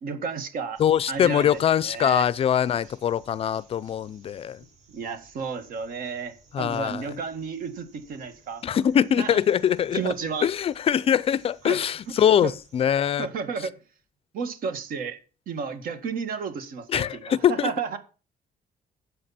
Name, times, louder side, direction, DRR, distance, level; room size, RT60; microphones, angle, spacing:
voice 1, 0.0-0.8 1.1-2.3 4.9-8.6 9.2-9.4 9.9-10.5 11.7-11.8 12.4-12.6 13.2-13.7 14.3-15.2 15.5-17.2 17.5-18.0, right 5 dB, 65° right, 1.9 m, -32 dB
sound 1, 0.7-12.9, right 3 dB, 50° right, 4.4 m, -58 dB
voice 2, 0.8-4.6 6.5-7.1 8.6-10.1 10.4-13.3 16.9-17.7, left 9 dB, 40° left, 0.4 m, -23 dB
13.0 x 8.0 x 4.2 m
cardioid pair, 170°, 16 cm